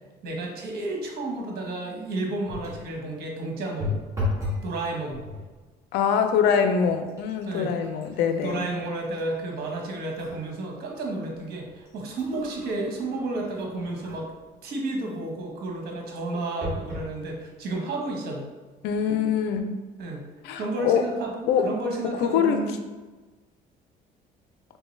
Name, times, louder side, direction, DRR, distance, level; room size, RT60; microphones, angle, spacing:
voice 1, 0.2-4.0 4.6-5.2 7.4-7.7 8.4-14.3 14.6-18.5 20.0-22.8, right 2 dB, 70° right, 0 dB, 1.0 m, -32 dB
sound 1, 2.4-2.9 3.8-4.7 5.0-5.5 6.3-6.4 6.8-10.4 10.9-11.0 11.7-14.4 16.6-17.1 17.8-17.9 18.1-18.2, left 2 dB, 15° right, 1.5 m, -35 dB
voice 2, 5.9-8.6 18.8-19.8 20.4-21.1 21.5-21.7 22.2-22.7, left 7 dB, 85° left, 7 dB, 0.5 m, -24 dB
3.6 x 3.1 x 3.1 m, 1.2 s
cardioid pair, 110°, 17 cm